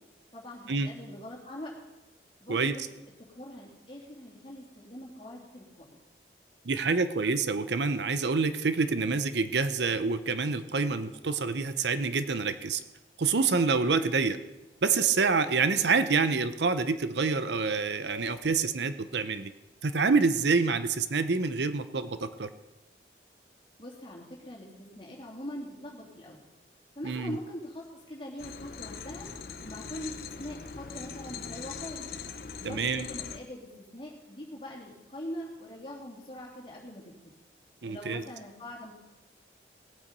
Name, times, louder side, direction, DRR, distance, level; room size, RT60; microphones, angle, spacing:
voice 1, 0.3-1.7 2.4-2.8 3.3-6.0 23.8-26.5 26.9-29.3 29.6-32.0 32.6-37.3 37.8-38.9, left 1 dB, 30° left, -3 dB, 2.9 m, -42 dB
voice 2, 6.6-12.8 13.2-14.4 14.8-19.5 19.8-22.5 27.0-27.3 32.6-33.0 37.8-38.2, right 4 dB, 75° right, 11 dB, 0.7 m, -27 dB
sound 1, 28.4-33.4, left 6 dB, 55° left, 0.7 m, -41 dB
18.0 x 8.5 x 5.3 m, 1.0 s
head